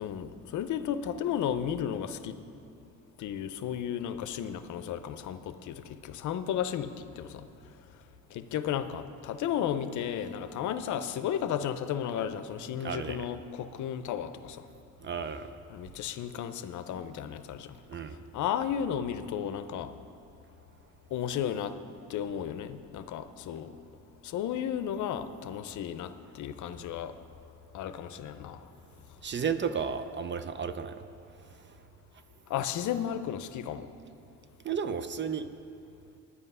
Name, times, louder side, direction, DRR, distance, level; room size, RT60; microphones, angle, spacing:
voice 1, 0.0-2.4 3.2-7.5 8.3-14.6 15.7-17.8 18.3-19.9 21.1-21.7 22.1-23.8 24.2-27.1 27.7-28.6 32.5-33.9, left 9 dB, 75° left, 11 dB, 0.6 m, -34 dB
voice 2, 12.8-13.3 15.0-15.6 17.9-18.2 29.2-31.0 34.6-35.5, right 6 dB, 40° right, 11 dB, 0.6 m, -33 dB
10.0 x 9.8 x 5.5 m, 2.5 s
cardioid pair, 90°, 30 cm